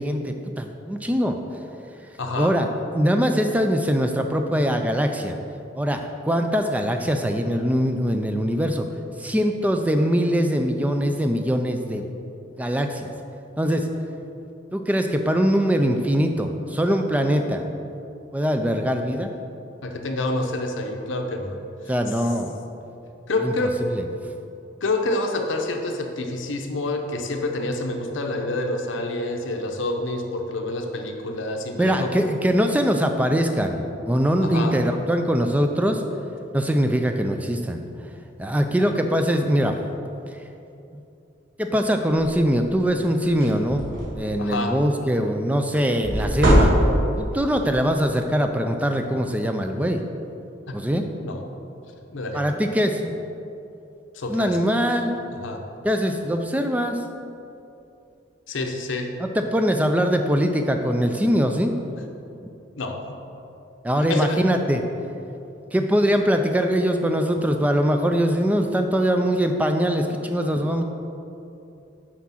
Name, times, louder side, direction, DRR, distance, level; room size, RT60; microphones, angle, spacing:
voice 1, 0.0-1.4 2.4-2.7 2.9-5.4 5.7-8.9 9.2-12.1 12.6-13.1 13.6-13.9 14.7-17.6 18.3-19.3 21.9-22.6 23.4-23.5 23.8-24.1 31.8-36.0 36.5-37.8 38.4-39.8 40.9-41.0 41.6-43.9 44.1-46.7 47.2-50.0 50.7-51.1 52.3-53.1 54.3-55.2 55.8-57.0 59.2-61.8 63.8-64.8 65.7-70.8, equal, 10° right, 5 dB, 0.3 m, -22 dB
voice 2, 2.2-2.5 19.8-21.6 23.3-23.8 24.8-32.3 34.4-34.8 44.4-44.8 50.7-50.8 51.2-51.4 52.1-52.5 54.1-54.6 55.3-55.6 58.5-59.1 62.8-63.0 64.1-64.4, left 2 dB, 80° left, 4 dB, 0.7 m, -27 dB
sound 1, 42.3-42.4 42.8-43.0 43.3-44.4 46.0-47.3, equal, 80° right, 1.4 m, -20 dB
6.0 x 4.8 x 5.7 m, 2.8 s
head